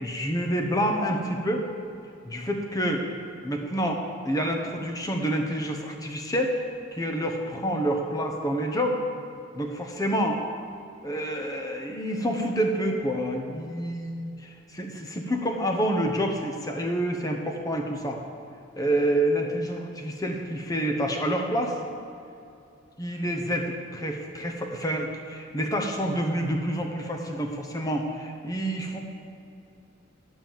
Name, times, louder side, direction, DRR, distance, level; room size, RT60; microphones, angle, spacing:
voice 1, 0.0-1.6 2.2-3.1 3.4-6.5 6.9-9.0 9.5-10.4 11.0-18.2 18.8-21.8 23.0-29.0, equal, 15° left, 2 dB, 1.0 m, -28 dB
11.5 x 5.4 x 7.4 m, 2.6 s
head